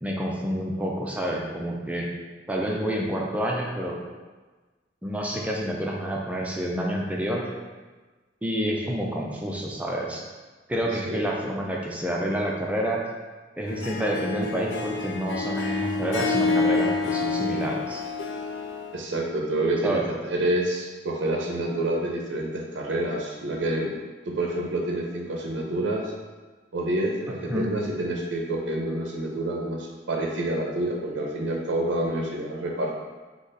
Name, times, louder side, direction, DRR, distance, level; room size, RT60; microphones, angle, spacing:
voice 1, 0.0-2.1 2.5-4.0 5.0-7.4 8.4-10.2 10.7-13.0 13.6-18.0 19.8-20.1 27.5-27.7, equal, 10° right, -2 dB, 0.5 m, -28 dB
Harp, 13.7-19.0, left 3 dB, 70° left, 0.4 m, -28 dB
voice 2, 18.9-20.0 20.2-23.9 24.2-26.1 26.7-32.9, right 1 dB, 80° right, -1 dB, 0.6 m, -28 dB
3.9 x 3.0 x 3.9 m, 1.3 s
head